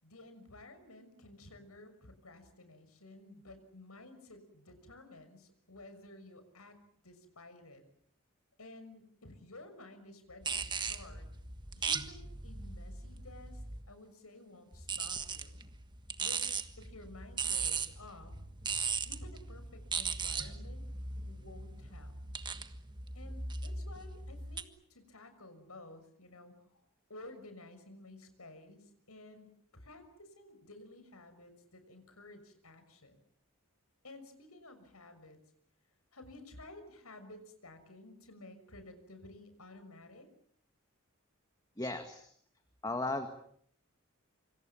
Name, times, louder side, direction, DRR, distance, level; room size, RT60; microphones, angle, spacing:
voice 1, 0.0-6.8 7.0-7.8 8.6-11.3 11.8-15.6 16.2-16.4 16.8-18.5 19.0-20.8 21.2-22.1 23.1-26.8 27.1-33.2 34.0-35.4 36.1-40.3, left 2 dB, 90° left, 9 dB, 6.4 m, -53 dB
sound 1, 10.4-13.9 14.7-24.6, right 5 dB, 20° right, 1.5 m, -38 dB
voice 2, 41.8-42.3 42.8-43.3, left 2 dB, 15° left, 6 dB, 1.9 m, -35 dB
27.0 x 26.5 x 7.3 m, 0.66 s
head